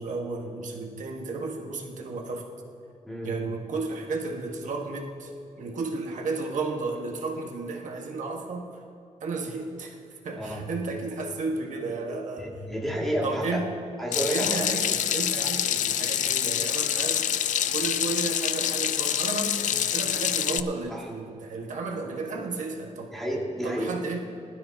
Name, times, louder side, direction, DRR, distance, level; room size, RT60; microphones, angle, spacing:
voice 1, 0.0-2.5 3.2-5.3 5.6-8.8 9.2-10.0 10.2-12.5 13.2-13.7 14.3-17.3 17.7-23.1 23.6-24.2, right 3 dB, 85° right, 2 dB, 1.4 m, -33 dB
voice 2, 12.4-13.6 14.0-14.5 15.4-15.5 20.9-21.1 23.1-23.9, equal, ahead, -4 dB, 2.3 m, -30 dB
Water tap faucet / Sink (filling or washing), 14.1-20.6, left 10 dB, 85° left, 0.4 m, -26 dB
20.5 x 12.5 x 2.8 m, 2.6 s
wide cardioid pair, 175°, 13 cm